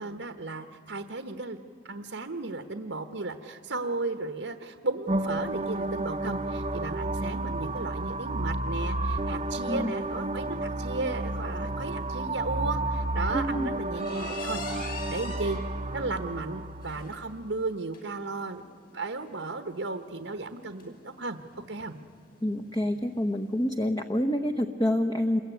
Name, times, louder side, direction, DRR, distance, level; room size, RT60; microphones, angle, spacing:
voice 1, 0.0-1.6 1.8-15.6 15.9-18.7 18.9-21.4 21.7-21.9, right 3 dB, 75° right, 7 dB, 1.2 m, -35 dB
sound 1, 5.0-23.7, left 3 dB, 50° left, 6.0 m, -47 dB
sound 2, 5.1-17.0, right 2 dB, 35° right, 0.8 m, -31 dB
voice 2, 13.3-13.7 22.4-25.4, equal, 20° left, 6 dB, 0.9 m, -27 dB
27.5 x 22.5 x 9.2 m, 2.2 s
head